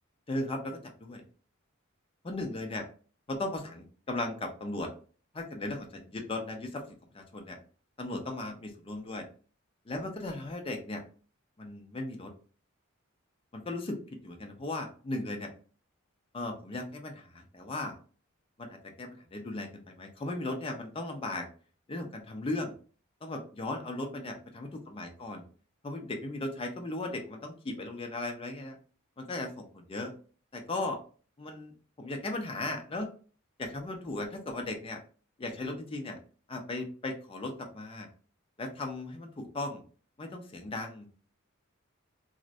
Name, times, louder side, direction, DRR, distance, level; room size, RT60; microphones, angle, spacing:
voice 1, 0.3-1.2 2.2-2.8 3.3-4.9 5.3-6.8 7.1-7.6 8.0-9.2 9.9-11.0 11.6-12.3 13.5-14.0 14.2-15.5 16.3-18.0 18.6-21.5 21.9-22.7 23.2-25.4 25.8-28.8 29.2-30.1 30.5-31.0 31.4-31.7 32.0-33.1 33.6-35.0 35.4-36.2 36.5-38.1 38.6-39.8 40.2-41.1, left 2 dB, 25° left, 3 dB, 0.4 m, -37 dB
2.5 x 2.0 x 2.4 m, 0.40 s
head